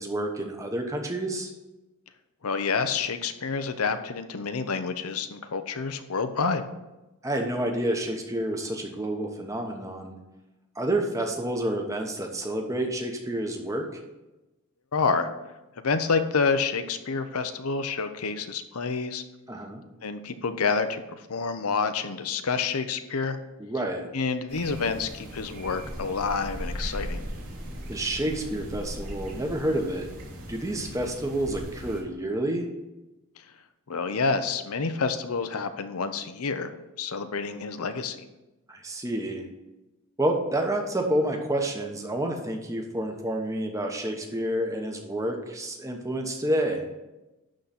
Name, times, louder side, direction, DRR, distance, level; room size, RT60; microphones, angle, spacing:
voice 1, 0.0-1.5 7.2-10.2 10.8-14.0 19.5-19.8 23.6-24.1 27.9-30.1 30.5-32.7 38.7-39.4 40.2-46.8, right 1 dB, 15° right, 3 dB, 1.0 m, -29 dB
voice 2, 2.4-6.6 14.9-15.3 15.8-19.2 20.0-23.4 24.1-27.3 33.9-36.7 37.0-38.2, left 5 dB, 75° left, 9 dB, 0.7 m, -28 dB
sound 1, 24.5-32.0, equal, 85° right, 2.9 m, -38 dB
11.5 x 3.9 x 5.8 m, 1.0 s
head